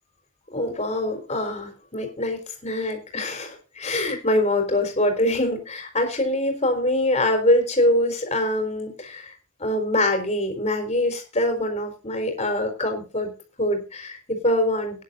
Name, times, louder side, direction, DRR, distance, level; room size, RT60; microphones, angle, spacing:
voice 1, 0.5-9.3 9.6-13.3 13.6-15.0, left 1 dB, 30° left, 4 dB, 4.2 m, -24 dB
19.5 x 10.5 x 2.6 m, 0.34 s
head